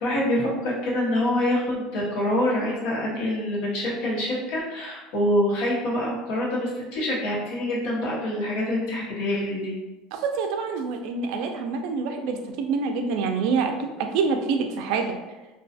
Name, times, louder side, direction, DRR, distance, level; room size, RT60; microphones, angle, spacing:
voice 1, 0.0-9.7, left 1 dB, 70° left, -4 dB, 0.9 m, -26 dB
voice 2, 10.1-15.2, right 5 dB, 65° right, 5 dB, 0.3 m, -26 dB
2.3 x 2.3 x 2.5 m, 1.1 s
cardioid pair, 155°, 0 cm